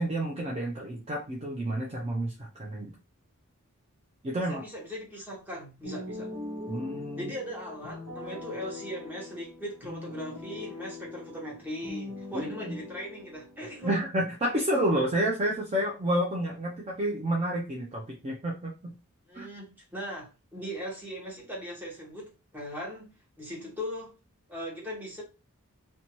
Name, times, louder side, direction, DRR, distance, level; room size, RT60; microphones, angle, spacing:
voice 1, 0.0-2.9 4.2-4.6 6.7-7.3 12.3-12.8 13.9-18.9 19.3-19.5, right 1 dB, 30° right, 0.4 m, -30 dB
voice 2, 4.3-6.3 7.1-14.0 19.3-24.2 24.5-25.2, equal, 10° right, 0.9 m, -39 dB
sound 1, 5.8-14.0, left 2 dB, 55° right, 1.1 m, -41 dB
2.6 x 2.2 x 2.9 m
head